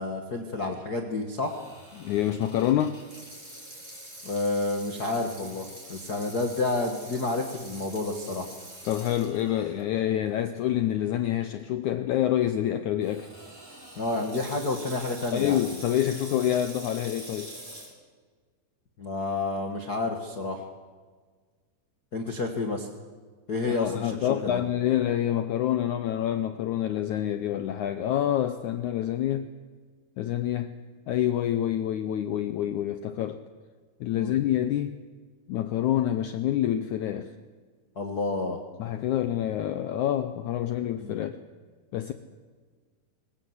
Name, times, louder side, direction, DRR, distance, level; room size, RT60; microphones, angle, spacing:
voice 1, 0.0-1.5 4.2-8.4 13.9-15.6 19.0-20.6 22.1-22.9 23.5-24.6 34.1-34.3 37.9-38.6 41.0-41.2, left 2 dB, 60° left, 3 dB, 1.0 m, -30 dB
Water tap faucet / Sink (filling or washing), 1.4-9.8 10.3-10.4 11.2-11.4 13.0-17.9, right 1 dB, 15° right, 6.6 m, -44 dB
voice 2, 2.0-3.0 8.9-13.3 15.3-17.5 23.7-29.5 30.2-30.8 31.1-33.4 34.0-35.0 35.5-37.3 38.8-41.4 41.9-42.1, left 11 dB, 80° left, 9 dB, 1.7 m, -27 dB
22.5 x 19.0 x 7.9 m, 1.5 s
omnidirectional pair, 4.4 m